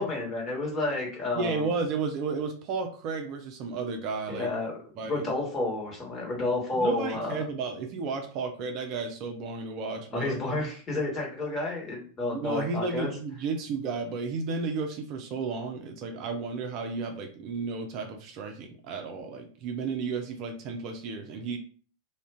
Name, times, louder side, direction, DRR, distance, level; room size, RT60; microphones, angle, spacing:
voice 1, 0.0-1.7 4.3-4.7 5.0-7.3 10.1-13.1, left 2 dB, 25° left, -2 dB, 1.2 m, -30 dB
voice 2, 1.3-4.5 5.0-5.2 6.8-10.4 12.3-21.6, right 4 dB, 40° right, 4 dB, 0.4 m, -33 dB
2.4 x 2.2 x 3.5 m, 0.42 s
figure-of-eight pair, 90°, 0 cm